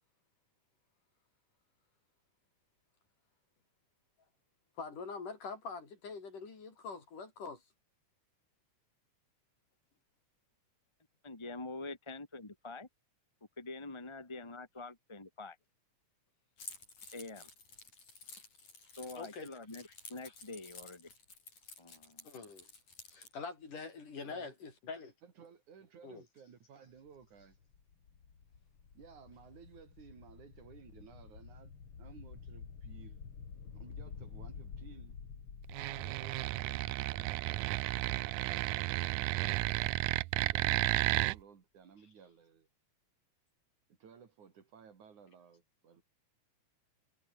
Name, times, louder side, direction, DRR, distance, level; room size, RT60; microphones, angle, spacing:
voice 1, 4.8-7.6 19.1-19.5 19.9-20.0 20.3-20.4 22.2-22.7 23.1-25.1 26.0-26.3, left 4 dB, 90° left, 7.2 m, -44 dB
voice 2, 11.2-12.9 13.6-15.6 17.1-17.5 19.0-21.1 21.8-22.3, left 3 dB, 15° left, 0.9 m, -45 dB
Keys jangling, 16.6-23.3, left 4 dB, 65° left, 8.1 m, -52 dB
voice 3, 25.2-27.6 28.9-31.7 32.0-33.2 33.7-35.2 36.0-39.5 40.3-42.7 43.9-46.0, right 7 dB, 70° right, 4.3 m, -57 dB
sound 1, 27.0-40.6, left 6 dB, 45° left, 3.3 m, -51 dB
sound 2, 35.7-41.4, right 20 dB, 85° right, 2.2 m, -33 dB
omnidirectional pair, 3.6 m